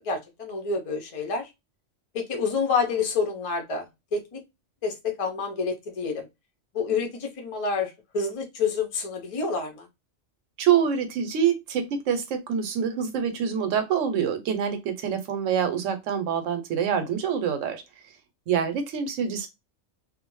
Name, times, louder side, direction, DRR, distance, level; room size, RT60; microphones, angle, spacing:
voice 1, 0.0-1.5 2.1-3.9 4.1-4.4 4.8-6.3 6.7-9.9, left 5 dB, 40° left, 0.5 m, -28 dB
voice 2, 10.6-17.8 18.5-19.5, right 8 dB, 85° right, 1.0 m, -26 dB
2.4 x 2.1 x 3.0 m
omnidirectional pair, 1.3 m